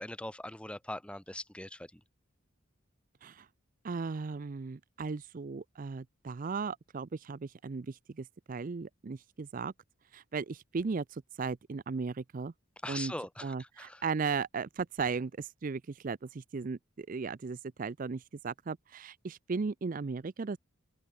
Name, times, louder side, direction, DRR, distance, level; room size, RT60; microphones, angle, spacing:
voice 1, 0.0-2.0 12.8-14.0, left 1 dB, 5° left, 1.1 m, -41 dB
voice 2, 3.8-9.7 10.1-12.5 12.9-13.1 13.4-20.6, right 4 dB, 40° right, 0.4 m, -36 dB
head